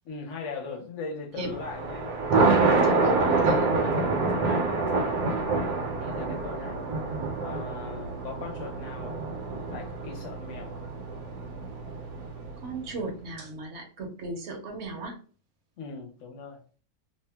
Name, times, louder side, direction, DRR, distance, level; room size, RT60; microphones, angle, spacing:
voice 1, 0.0-2.1 2.7-3.7 4.0-6.8 7.4-9.2 9.7-10.8 15.8-16.6, left 4 dB, 60° left, 0.9 m, -40 dB
Thunder, 1.5-12.8, right 3 dB, 80° right, 1.1 m, -27 dB
voice 2, 2.4-3.7 12.6-15.2, right 4 dB, 60° right, 0.8 m, -35 dB
2.7 x 2.0 x 3.3 m
omnidirectional pair, 1.6 m